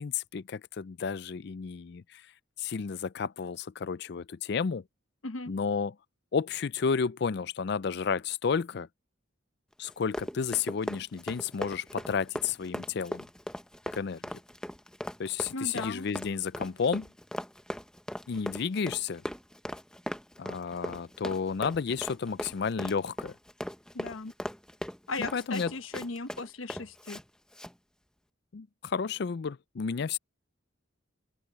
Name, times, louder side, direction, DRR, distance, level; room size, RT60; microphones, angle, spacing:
voice 1, 0.0-2.2 2.6-4.8 5.5-5.9 6.3-8.9 9.8-13.3 13.9-14.3 15.2-17.1 18.3-19.2 20.4-23.3 25.2-25.7 28.5-30.2, left 6 dB, 55° left, 0.4 m, -32 dB
Run, 9.8-27.2 27.5-27.7, equal, 5° left, 0.8 m, -39 dB
voice 2, 15.5-16.0 23.9-24.3 25.1-27.2, left 3 dB, 90° left, 1.1 m, -37 dB
open air
head